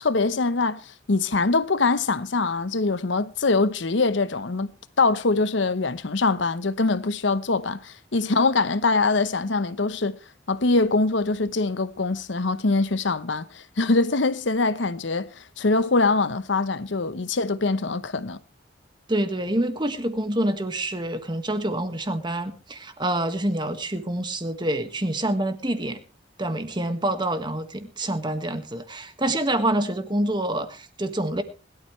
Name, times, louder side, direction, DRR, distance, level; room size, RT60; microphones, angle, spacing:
voice 1, 0.0-10.2 10.5-18.4, left 3 dB, 70° left, 0.9 m, -23 dB
voice 2, 19.1-26.0 26.4-31.4, right 1 dB, 25° right, 1.6 m, -27 dB
21.0 x 12.5 x 3.2 m
head